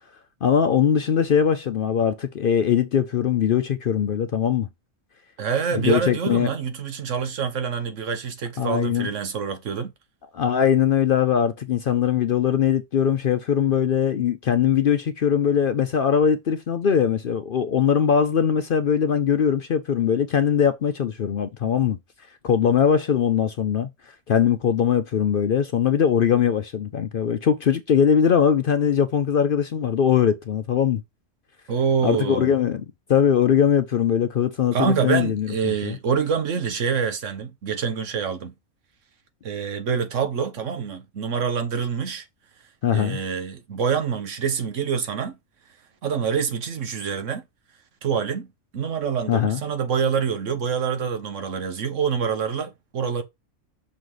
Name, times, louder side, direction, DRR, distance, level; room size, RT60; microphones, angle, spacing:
voice 1, 0.4-4.7 5.8-6.5 8.6-9.1 10.3-22.0 22.4-23.9 24.3-31.0 32.0-32.8 33.1-36.0 42.8-43.2 49.3-49.6, left 8 dB, 60° left, 0.6 m, -21 dB
voice 2, 5.4-9.9 31.7-32.5 34.7-38.5 39.4-42.2 42.9-45.4 46.0-47.4 48.0-48.5 48.7-53.2, right 6 dB, 70° right, 1.3 m, -26 dB
6.2 x 3.9 x 4.8 m
omnidirectional pair, 1.3 m